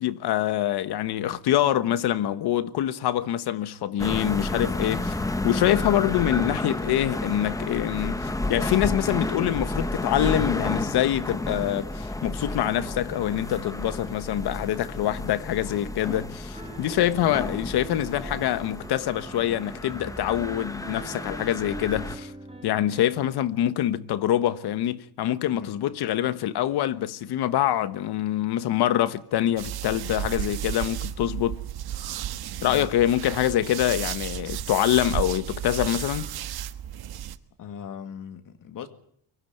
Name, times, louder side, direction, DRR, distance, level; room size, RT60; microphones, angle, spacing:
voice 1, 0.0-22.3 22.6-31.6 32.6-36.3, left 12 dB, 85° left, 1.3 m, -25 dB
sound 1, 4.0-22.2, left 2 dB, 10° left, 0.9 m, -31 dB
Piano, 16.5-23.4, right 3 dB, 15° right, 3.4 m, -43 dB
sound 2, 29.6-37.4, right 11 dB, 75° right, 1.4 m, -33 dB
voice 2, 37.6-38.9, left 8 dB, 55° left, 2.1 m, -39 dB
24.0 x 15.5 x 9.3 m
cardioid pair, 155°, 38 cm